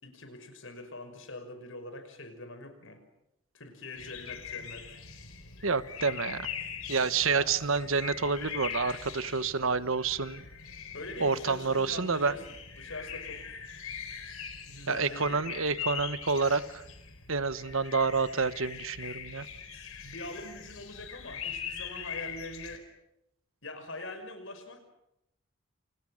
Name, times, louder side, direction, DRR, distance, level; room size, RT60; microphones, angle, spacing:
voice 1, 0.0-3.0 3.5-5.0 7.0-7.6 10.9-12.4 12.8-13.4 14.6-15.5 20.0-22.9 23.6-24.8, left 2 dB, 65° left, 8 dB, 5.6 m, -43 dB
sound 1, 4.0-22.8, left 7 dB, 90° left, 4.4 m, -42 dB
voice 2, 5.6-6.5 6.9-10.4 11.2-12.4 14.9-16.8 17.3-19.5, right 4 dB, 75° right, 14 dB, 1.2 m, -28 dB
29.5 x 29.5 x 6.5 m, 0.84 s
head